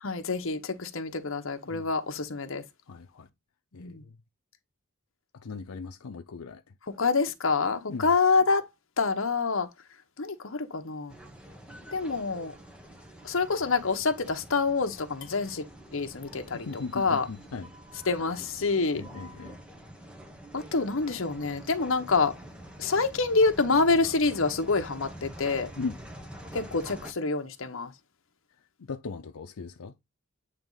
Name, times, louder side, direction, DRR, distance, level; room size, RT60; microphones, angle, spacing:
voice 1, 0.0-2.6 3.7-4.0 7.0-8.7 9.0-9.7 10.2-11.1 11.9-12.5 13.2-15.6 15.9-16.7 16.9-17.3 18.1-19.0 20.5-22.3 22.8-25.7 26.5-27.9, left 4 dB, 65° left, 1.0 m, -27 dB
voice 2, 2.9-3.3 3.7-4.2 5.3-6.7 7.9-8.1 16.5-17.7 18.9-19.6 25.8-26.0 28.8-29.9, left 4 dB, 85° left, 0.6 m, -38 dB
sound 1, 11.1-27.1, right 1 dB, 5° right, 0.9 m, -46 dB
8.8 x 3.0 x 3.9 m
head